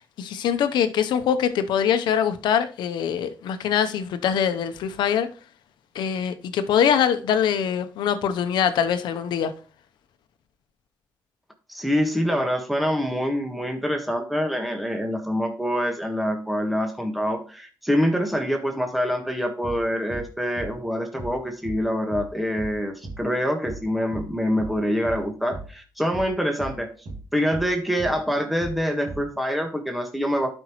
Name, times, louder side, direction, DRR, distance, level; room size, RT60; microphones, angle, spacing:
voice 1, 0.0-5.3 5.9-9.5, left 8 dB, 85° left, 0.8 m, -23 dB
voice 2, 11.7-26.9 27.3-30.5, equal, ahead, 1.5 m, -25 dB
sound 1, 19.6-19.8 20.1-20.3 20.6-20.8 21.2-21.4 21.6-21.8 22.1-22.3 22.6-22.8 23.0-23.2 23.6-23.8 24.1-24.3 24.6-24.8 25.0-25.2 25.5-25.7 26.1-26.3 26.6-26.8 27.1-27.3 27.5-27.7 28.0-28.2 28.6-28.8 29.1-29.3, right 2 dB, 60° right, 2.6 m, -37 dB
11.5 x 5.4 x 3.1 m
cardioid pair, 80°, 8 cm